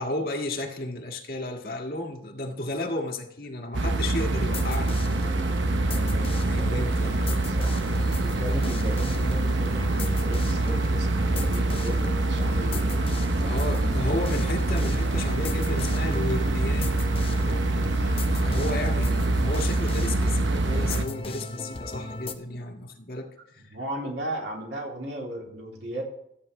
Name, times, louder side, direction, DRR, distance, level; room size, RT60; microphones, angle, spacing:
voice 1, 0.0-5.0 6.3-7.1 13.4-17.0 17.3-17.6 18.3-23.6, left 1 dB, 50° left, 1.7 m, -33 dB
sound 1, 3.7-21.1, right 2 dB, 85° right, 0.9 m, -25 dB
sound 2, 4.2-22.3, left 2 dB, 30° left, 0.8 m, -35 dB
voice 2, 5.8-14.1 18.8-19.0 23.5-26.0, right 1 dB, 70° right, 3.1 m, -37 dB
13.5 x 9.0 x 3.3 m
head